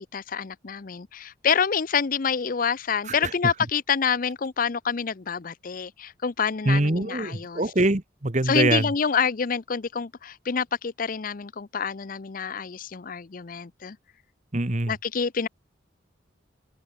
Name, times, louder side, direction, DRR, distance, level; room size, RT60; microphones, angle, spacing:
voice 1, 0.1-7.6 8.4-14.0 14.9-15.5, left 6 dB, 45° left, 0.6 m, -27 dB
voice 2, 6.6-8.9 14.5-14.9, right 2 dB, 40° right, 1.3 m, -23 dB
head